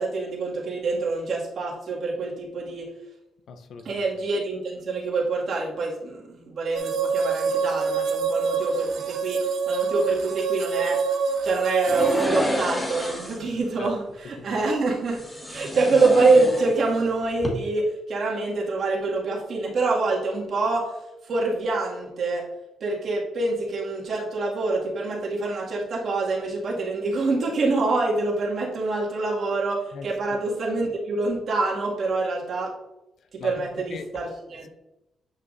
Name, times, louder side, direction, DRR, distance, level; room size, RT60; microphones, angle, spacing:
voice 1, 0.0-2.9 3.8-11.0 11.4-15.2 15.5-20.9 21.2-22.5 22.8-32.7 33.3-34.7, right 3 dB, 55° right, 2.2 m, -26 dB
voice 2, 3.5-4.0 13.8-13.9 14.4-14.5 29.9-30.1 33.4-34.2, left 5 dB, 60° left, 0.6 m, -38 dB
sound 1, 6.7-12.3, right 5 dB, 75° right, 0.7 m, -26 dB
sound 2, 11.9-13.5 15.1-17.0 17.3-17.5, left 1 dB, 15° left, 1.5 m, -29 dB
9.4 x 5.5 x 2.7 m
cardioid pair, 120°, 0 cm